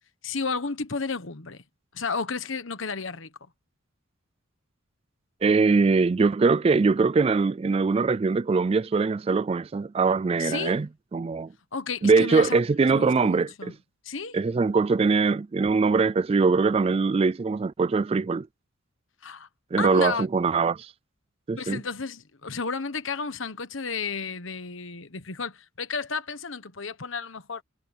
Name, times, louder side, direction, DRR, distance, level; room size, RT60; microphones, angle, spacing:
voice 1, 0.2-1.6 1.9-3.3 10.4-10.8 11.7-13.7 14.0-14.4 19.2-19.5 19.8-20.3 21.6-27.6, left 5 dB, 65° left, 1.3 m, -32 dB
voice 2, 5.4-10.9 11.1-11.5 12.0-13.7 14.3-18.5 19.7-20.9 21.5-21.8, right 4 dB, 30° right, 0.3 m, -22 dB
head